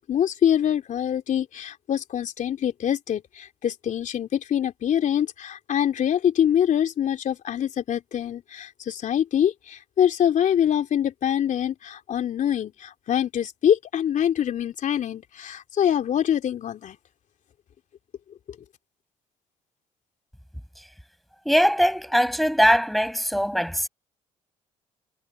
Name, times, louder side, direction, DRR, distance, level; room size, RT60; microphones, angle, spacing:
voice 1, 0.1-17.0, left 9 dB, 60° left, 3.2 m, -24 dB
voice 2, 21.5-23.9, equal, ahead, 5.3 m, -21 dB
hypercardioid pair, 55°, 15 cm